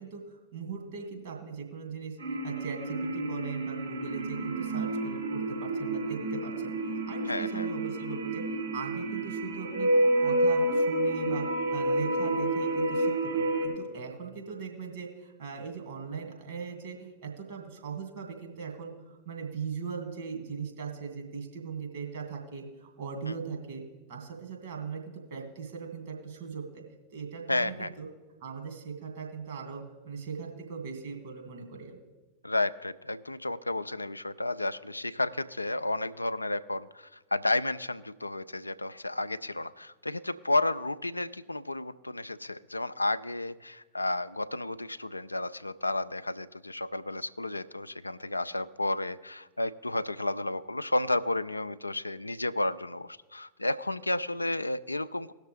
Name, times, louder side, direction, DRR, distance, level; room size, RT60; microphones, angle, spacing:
voice 1, 0.0-9.9 10.2-11.5 11.7-23.8 24.1-26.8 27.1-28.1 28.4-32.0, right 5 dB, 55° right, 1 dB, 2.3 m, -39 dB
sound 1, 2.2-13.7, right 1 dB, 90° right, 4.1 m, -29 dB
voice 2, 7.3-7.7 23.3-23.4 27.5-27.9 32.4-55.3, left 2 dB, 85° left, 13 dB, 0.3 m, -32 dB
18.5 x 6.5 x 3.3 m, 1.2 s
figure-of-eight pair, 90°, 0 cm